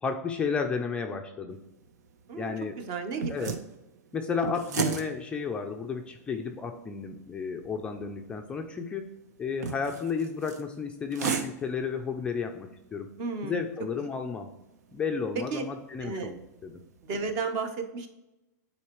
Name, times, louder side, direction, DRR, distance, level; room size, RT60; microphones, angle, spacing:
voice 1, 0.0-1.6 2.3-2.7 3.3-3.5 4.1-9.1 9.4-13.1 13.4-14.5 14.9-16.7, left 5 dB, 10° left, 4 dB, 0.4 m, -32 dB
sound 1, 1.5-17.3, right 5 dB, 80° right, 0.9 m, -39 dB
voice 2, 2.3-3.6 13.2-13.6 14.0-14.1 15.3-15.6 16.0-16.3 17.0-18.1, right 4 dB, 40° right, 7 dB, 1.0 m, -33 dB
8.6 x 4.3 x 3.1 m, 0.93 s
supercardioid pair, 155°, 9 cm